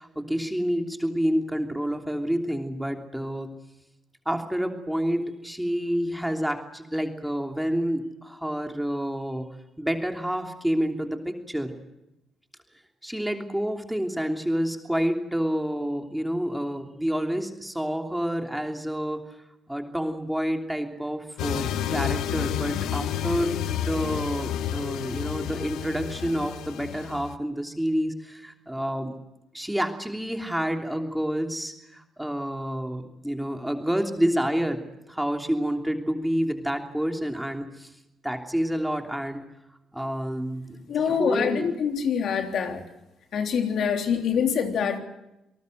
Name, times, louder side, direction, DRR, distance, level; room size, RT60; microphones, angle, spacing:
voice 1, 0.0-3.5 4.2-9.5 9.8-11.7 13.0-19.2 19.7-29.1 29.5-34.8 35.1-37.9 38.2-39.4 39.9-41.7, equal, 5° right, 4 dB, 3.1 m, -28 dB
sound 1, 21.4-27.4, left 10 dB, 85° left, 1.1 m, -30 dB
voice 2, 40.9-42.8 43.3-45.0, left 7 dB, 65° left, 4 dB, 3.4 m, -25 dB
28.0 x 19.0 x 7.9 m, 0.93 s
cardioid pair, 90°, 0 cm